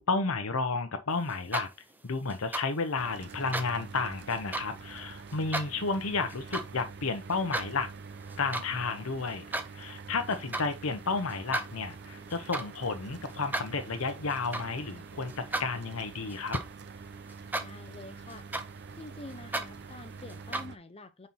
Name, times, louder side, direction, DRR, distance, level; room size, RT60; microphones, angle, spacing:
voice 1, 0.1-1.7 2.0-7.9 8.4-9.4 9.7-16.6, left 4 dB, 70° left, 0.9 m, -32 dB
sound 1, 1.3-1.9 2.3-2.7 3.3-3.7 4.3-4.7 5.3-5.7 6.3-6.7 7.1-7.7 8.2-8.7 9.0-9.7 10.3-10.7 11.3-17.0 17.3-17.9 18.3-20.6, right 2 dB, 10° right, 0.6 m, -37 dB
Mechanical fan, 3.0-20.8, right 5 dB, 50° right, 0.6 m, -46 dB
voice 2, 17.6-18.5 18.9-21.3, left 2 dB, 30° left, 0.8 m, -47 dB
5.4 x 4.5 x 4.2 m
head